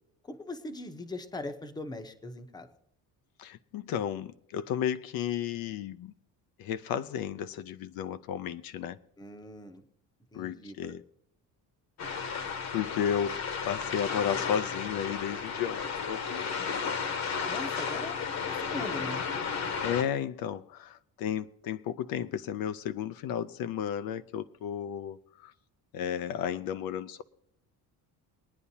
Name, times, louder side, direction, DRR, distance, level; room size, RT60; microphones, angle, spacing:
voice 1, 0.2-2.7 9.2-9.8 10.3-10.9 17.5-19.2, left 2 dB, 10° left, 0.8 m, -40 dB
voice 2, 3.4-6.1 6.6-9.0 10.3-11.0 12.7-16.6 19.8-25.5 25.9-27.2, left 9 dB, 65° left, 0.6 m, -33 dB
sound 1, 12.0-20.0, left 6 dB, 45° left, 1.1 m, -33 dB
23.0 x 9.9 x 2.8 m
cardioid pair, 175°, 38 cm